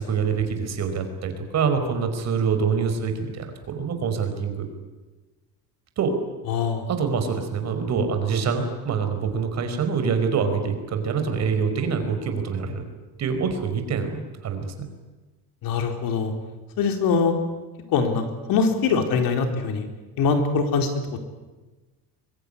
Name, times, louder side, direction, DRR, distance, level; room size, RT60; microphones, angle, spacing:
voice 1, 0.0-4.7 6.0-6.1 6.9-12.8 13.2-14.9, right 6 dB, 45° right, 7 dB, 4.7 m, -25 dB
voice 2, 6.5-6.8 15.6-16.3 16.8-17.3 17.9-19.9 20.2-20.9, left 5 dB, 65° left, 5 dB, 4.3 m, -22 dB
24.0 x 22.5 x 9.9 m, 1.2 s
cardioid pair, 150°, 37 cm